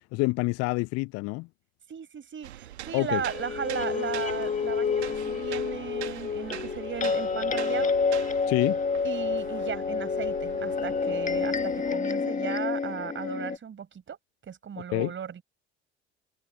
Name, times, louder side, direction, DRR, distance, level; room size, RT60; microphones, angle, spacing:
voice 1, 0.1-1.5 2.9-3.2 8.5-8.8 14.9-15.1, left 25 dB, 50° left, 0.5 m, -27 dB
voice 2, 1.9-7.9 9.0-14.2 14.4-15.4, right 7 dB, 35° right, 5.7 m, -36 dB
sound 1, 2.4-12.0, right 13 dB, 75° right, 1.5 m, -43 dB
sound 2, 3.2-13.6, left 5 dB, 25° left, 1.7 m, -29 dB
figure-of-eight pair, 60°, 33 cm